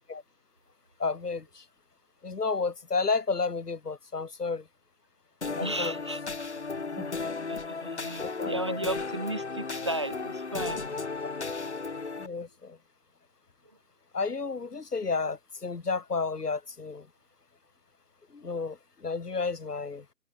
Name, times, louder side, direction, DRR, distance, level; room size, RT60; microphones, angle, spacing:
voice 1, 1.0-1.6 2.2-4.6 5.6-5.9 7.0-7.1 8.2-8.8 12.2-12.8 14.1-17.1 18.3-20.0, left 4 dB, 75° left, 1.3 m, -31 dB
sound 1, 5.4-12.3, left 4 dB, 45° left, 0.6 m, -35 dB
voice 2, 5.6-6.2 6.7-7.1 7.5-11.0 12.3-12.4, right 1 dB, 20° right, 1.0 m, -35 dB
figure-of-eight pair, 155°, 47 cm